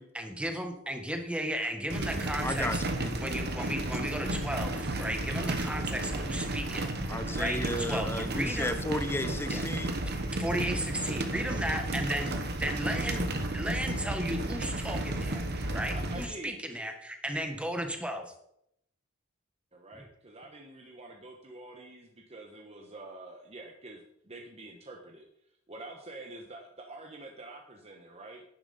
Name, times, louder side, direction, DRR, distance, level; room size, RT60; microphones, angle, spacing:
voice 1, 0.1-7.0 7.4-8.8 9.5-9.6 10.4-12.3 12.6-13.3 13.5-15.4 15.7-18.3 19.9-20.0, right 1 dB, 5° right, 4 dB, 1.3 m, -35 dB
sound 1, 1.9-16.3, right 1 dB, 50° right, 1.2 m, -33 dB
voice 2, 2.4-3.1 7.1-10.0, left 1 dB, 10° left, 9 dB, 0.8 m, -33 dB
voice 3, 15.7-16.6 19.7-25.3 25.7-28.4, right 2 dB, 30° right, 1 dB, 1.1 m, -46 dB
10.0 x 10.0 x 4.2 m, 0.74 s
head